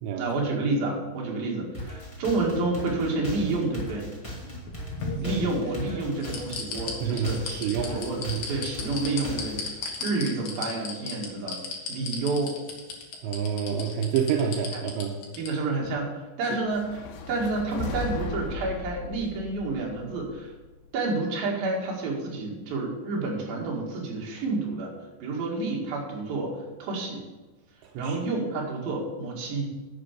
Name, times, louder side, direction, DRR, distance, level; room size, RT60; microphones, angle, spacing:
voice 1, 0.2-4.1 5.2-7.4 7.8-8.2 8.5-11.6 11.9-12.6 14.7-14.8 15.3-20.5 20.9-24.9 25.2-27.2 28.0-29.7, right 3 dB, 60° right, -2 dB, 3.7 m, -29 dB
sound 1, 1.7-9.7, left 1 dB, 10° left, 1.6 m, -38 dB
sound 2, 4.5-5.8 6.2-15.5 15.8-15.9, left 5 dB, 55° left, 2.6 m, -35 dB
voice 2, 7.0-8.5 13.2-15.1 27.8-28.2, right 7 dB, 85° right, 2 dB, 3.1 m, -28 dB
sound 3, 16.6-20.9, left 3 dB, 85° left, 3.3 m, -36 dB
10.5 x 7.0 x 6.7 m, 1.2 s
omnidirectional pair, 5.0 m